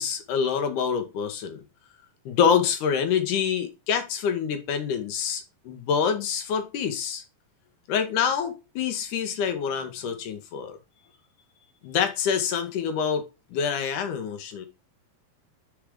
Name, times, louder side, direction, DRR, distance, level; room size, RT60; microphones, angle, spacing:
voice 1, 0.0-1.6 2.3-7.2 7.9-10.8 11.8-14.7, left 7 dB, 70° left, 2.3 m, -26 dB
5.0 x 4.8 x 4.9 m
omnidirectional pair, 4.2 m